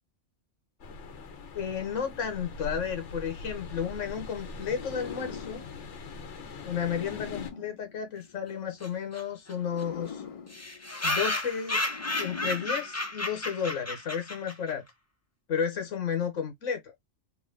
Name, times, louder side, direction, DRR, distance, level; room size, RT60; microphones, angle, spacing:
sound 1, 0.8-7.5, left 3 dB, 70° left, 1.2 m, -42 dB
voice 1, 1.5-5.6 6.6-10.2 11.0-11.8 12.2-14.8 15.5-16.9, left 7 dB, 90° left, 1.3 m, -32 dB
sound 2, 4.6-8.8 9.5-13.4, left 7 dB, 55° left, 0.3 m, -44 dB
sound 3, 8.8-8.9 9.1-9.2 9.5-9.6 9.8-9.9 10.5-14.7, left 2 dB, 15° left, 0.6 m, -32 dB
3.2 x 2.4 x 3.7 m
omnidirectional pair, 1.2 m